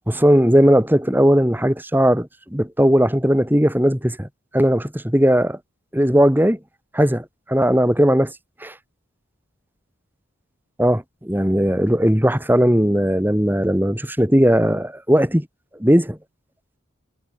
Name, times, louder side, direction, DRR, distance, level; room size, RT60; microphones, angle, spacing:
voice 1, 0.1-4.3 4.5-5.6 5.9-6.6 6.9-8.3 8.6-8.7 10.8-15.5 15.8-16.2, equal, 10° right, 2.5 m, -17 dB
head